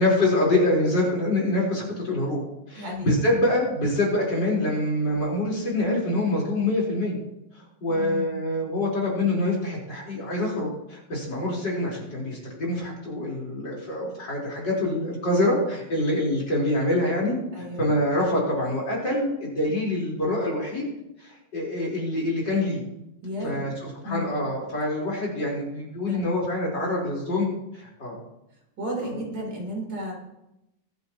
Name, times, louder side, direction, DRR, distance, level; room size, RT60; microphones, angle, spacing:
voice 1, 0.0-2.4 2.7-7.2 7.5-20.9 21.2-22.8 23.4-27.5 27.7-28.2 29.0-29.2, left 1 dB, 70° left, -4 dB, 5.1 m, -25 dB
voice 2, 2.8-3.1 7.9-8.3 17.5-17.9 23.2-23.7 24.0-24.2 26.0-26.2 28.8-30.1, equal, 70° right, -2 dB, 4.4 m, -33 dB
23.0 x 8.7 x 3.0 m, 0.89 s
omnidirectional pair, 2.0 m